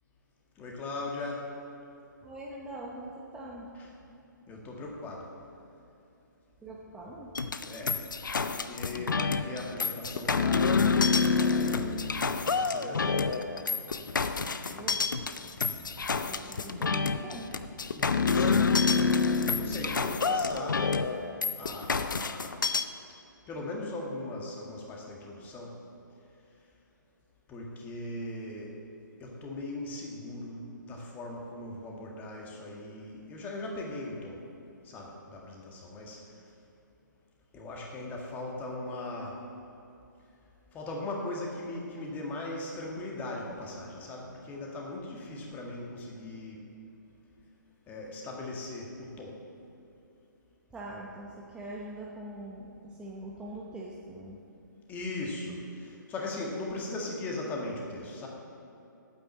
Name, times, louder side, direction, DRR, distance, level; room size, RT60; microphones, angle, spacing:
voice 1, 0.6-1.5 4.5-5.3 7.7-8.0 8.4-13.5 17.9-20.8 21.6-22.5 23.5-25.7 27.5-28.7 29.2-34.4 34.9-36.2 37.5-39.4 40.7-46.6 47.9-49.4 54.9-58.3, left 2 dB, 15° left, -1 dB, 1.7 m, -39 dB
voice 2, 2.2-3.7 6.6-7.3 7.7-7.9 14.0-15.1 15.4-17.5 50.7-54.4, right 1 dB, 10° right, -4 dB, 0.9 m, -43 dB
sound 1, 7.3-22.8, left 5 dB, 70° left, 0.6 m, -28 dB
9.2 x 8.8 x 7.0 m, 2.7 s
figure-of-eight pair, 135°, 11 cm